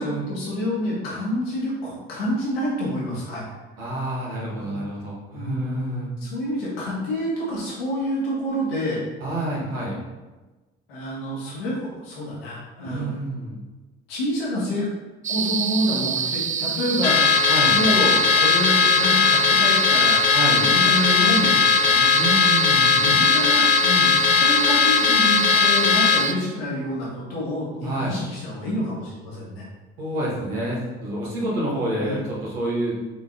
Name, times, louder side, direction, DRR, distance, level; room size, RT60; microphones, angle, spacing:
voice 1, 0.0-3.5 4.6-4.8 5.3-5.9 6.2-9.0 10.9-13.3 14.1-14.9 15.3-20.2 20.5-22.1 23.0-29.7 32.0-32.2, left 1 dB, 80° left, -7 dB, 2.2 m, -28 dB
voice 2, 3.8-6.1 9.2-10.0 12.8-13.6 17.5-17.8 20.3-20.7 22.2-23.0 27.8-28.2 30.0-32.9, right 1 dB, 80° right, -6 dB, 2.0 m, -28 dB
sound 1, 15.2-26.3, right 6 dB, 25° right, 0.5 m, -26 dB
Car / Alarm, 17.0-26.3, left 6 dB, 60° left, 0.8 m, -18 dB
6.7 x 4.5 x 4.0 m, 1.2 s
figure-of-eight pair, 45°, 29 cm